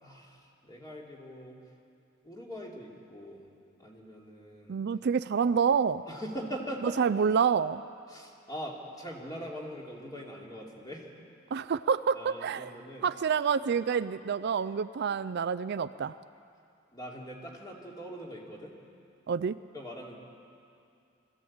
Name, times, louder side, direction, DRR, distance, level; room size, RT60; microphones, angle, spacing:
voice 1, 0.0-1.6 2.2-3.5 3.8-4.8 6.1-7.0 8.1-11.1 12.1-13.1 16.9-18.7 19.7-20.2, equal, 20° left, -2 dB, 2.9 m, -42 dB
voice 2, 4.7-6.0 6.8-7.8 11.5-12.7 13.0-16.1 19.3-19.6, right 6 dB, 55° right, 14 dB, 0.4 m, -28 dB
21.0 x 15.0 x 8.7 m, 2.5 s
head